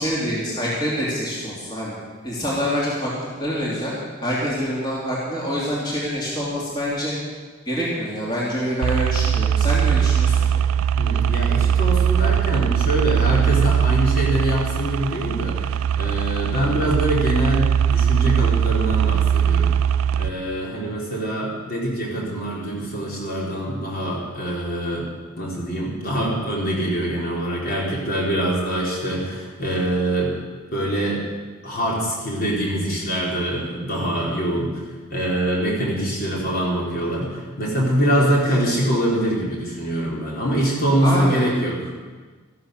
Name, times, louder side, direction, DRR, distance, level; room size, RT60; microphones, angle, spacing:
voice 1, 0.0-1.9 2.2-3.1 3.4-3.9 4.2-7.1 7.7-10.6 38.2-38.3 41.0-41.4, equal, 20° left, -6 dB, 3.0 m, -26 dB
sound 1, 8.8-20.3, right 8 dB, 85° right, 0.3 m, -20 dB
voice 2, 11.0-15.6 16.0-19.7 20.2-25.1 25.4-30.3 30.7-31.2 31.6-34.8 35.1-41.9, right 1 dB, 45° left, -4 dB, 4.0 m, -24 dB
14.0 x 12.5 x 6.7 m, 1.4 s
head